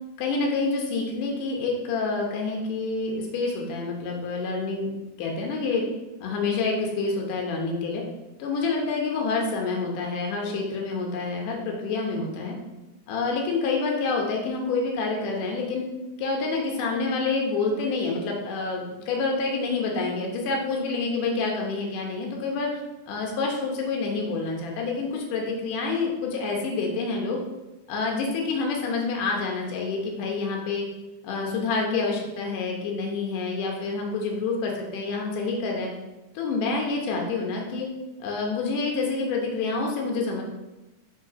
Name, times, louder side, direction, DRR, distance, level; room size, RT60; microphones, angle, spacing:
voice 1, 0.2-4.9 5.2-5.8 6.2-8.0 8.4-12.6 13.1-15.9 16.2-22.7 23.1-27.4 27.9-30.9 31.2-35.9 36.4-37.9 38.2-40.4, left 4 dB, 80° left, 0 dB, 2.6 m, -27 dB
5.7 x 4.3 x 4.9 m, 1.1 s
omnidirectional pair, 3.6 m